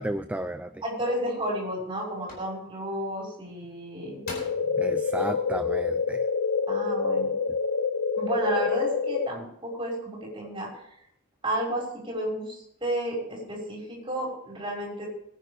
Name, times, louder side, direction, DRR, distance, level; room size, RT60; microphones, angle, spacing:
voice 1, 0.0-0.8 4.8-6.3, right 1 dB, 5° right, 9 dB, 0.4 m, -33 dB
voice 2, 0.8-4.2 6.7-7.3 8.2-10.7 11.4-15.1, right 1 dB, 25° right, -3 dB, 5.7 m, -32 dB
sound 1, 0.9-1.0 1.6-1.9 2.3-2.5 3.7-3.8 4.2-4.7 5.3-5.4, left 2 dB, 45° left, 4.4 m, -40 dB
sound 2, 4.3-9.3, left 5 dB, 90° left, 0.6 m, -27 dB
21.5 x 10.0 x 3.4 m, 0.73 s
head